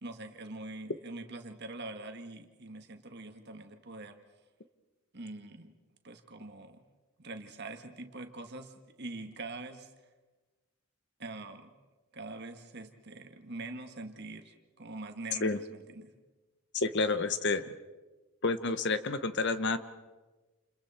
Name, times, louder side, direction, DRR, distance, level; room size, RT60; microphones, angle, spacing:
voice 1, 0.0-4.2 5.1-5.7 6.0-6.8 7.2-8.7 9.0-9.9 11.2-11.7 12.1-16.1, right 2 dB, 50° right, 6 dB, 1.8 m, -44 dB
voice 2, 16.7-17.6 18.4-19.8, left 3 dB, 50° left, 11 dB, 1.0 m, -29 dB
29.0 x 28.5 x 4.4 m, 1.2 s
head